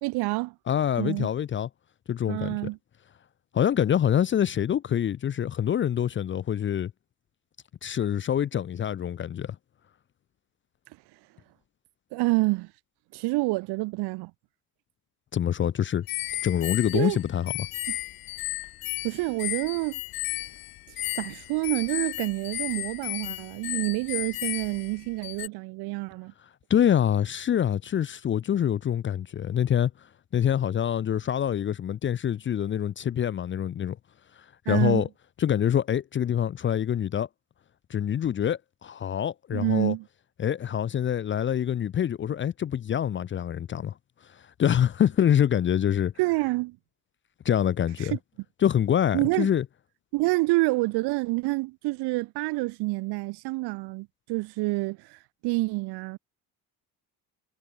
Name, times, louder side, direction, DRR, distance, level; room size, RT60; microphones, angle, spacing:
voice 1, 0.0-0.5 1.0-1.3 2.3-2.8 12.1-12.7 13.1-14.3 16.9-17.2 19.0-20.0 21.1-26.3 34.7-35.1 39.5-40.0 46.2-46.8 48.0-48.2 49.1-49.5 50.1-56.2, right 23 dB, 75° right, 1.0 m, -28 dB
voice 2, 0.7-1.7 2.1-2.5 3.5-6.9 7.8-9.6 15.3-16.1 16.4-17.7 26.7-30.1 30.3-34.0 34.4-35.1 35.4-37.3 37.9-39.9 40.4-43.9 44.2-46.1 47.4-48.2 48.6-49.6, left 9 dB, 30° left, 0.9 m, -25 dB
sound 1, 16.1-25.5, left 17 dB, 60° left, 2.0 m, -34 dB
cardioid pair, 170°, 39 cm